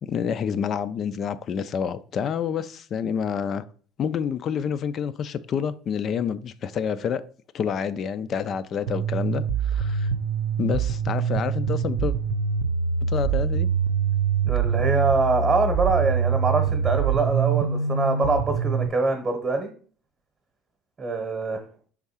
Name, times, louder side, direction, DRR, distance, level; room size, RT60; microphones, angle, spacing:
voice 1, 0.0-3.6 4.0-7.2 7.5-10.1 10.6-12.1 13.1-13.7, left 7 dB, 30° left, 14 dB, 0.3 m, -28 dB
sound 1, 8.9-18.9, right 6 dB, 80° right, 0.6 m, -24 dB
voice 2, 14.4-19.7 21.0-21.6, right 3 dB, 20° right, 4 dB, 0.9 m, -24 dB
5.5 x 3.6 x 5.5 m, 0.43 s
cardioid pair, 175°, 0 cm